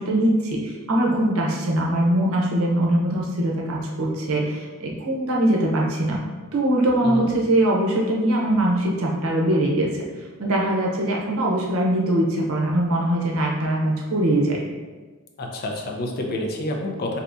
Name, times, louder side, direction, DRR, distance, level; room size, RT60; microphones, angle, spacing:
voice 1, 0.0-6.2 6.5-9.9 10.4-14.6, right 1 dB, 75° right, -2 dB, 0.7 m, -22 dB
voice 2, 15.4-17.2, left 1 dB, 45° left, 1 dB, 0.4 m, -28 dB
3.4 x 2.8 x 2.6 m, 1.4 s
head